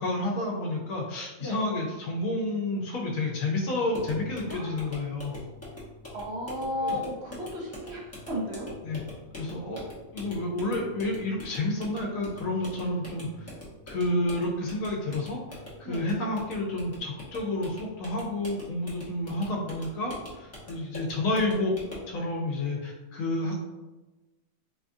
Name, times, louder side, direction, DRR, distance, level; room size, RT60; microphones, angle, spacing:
voice 1, 0.0-5.4 6.8-7.0 8.8-9.0 9.4-9.8 10.1-13.5 13.9-21.7 22.1-23.7, left 2 dB, 85° left, -1 dB, 1.0 m, -30 dB
sound 1, 3.9-22.1, left 1 dB, 15° left, 0.8 m, -44 dB
voice 2, 4.5-4.9 6.1-8.7 15.8-16.1, left 1 dB, 60° right, -3 dB, 0.9 m, -34 dB
4.0 x 2.3 x 2.6 m, 1.1 s
omnidirectional pair, 1.4 m